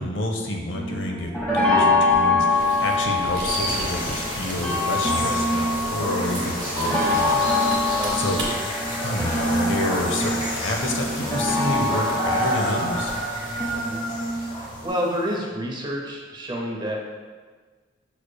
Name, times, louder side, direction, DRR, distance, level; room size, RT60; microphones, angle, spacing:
voice 1, 0.0-13.1, left 1 dB, 80° left, 1 dB, 0.6 m, -29 dB
sound 1, 0.7-14.9, left 2 dB, 5° left, 0.8 m, -25 dB
sound 2, 2.1-5.1 5.4-8.5 11.7-11.8 13.1-13.8, right 2 dB, 75° right, 1.2 m, -36 dB
sound 3, 3.4-15.3, equal, 30° left, 1.0 m, -29 dB
voice 2, 14.3-17.0, equal, 25° right, -1 dB, 0.6 m, -29 dB
6.2 x 3.2 x 2.2 m, 1.4 s
head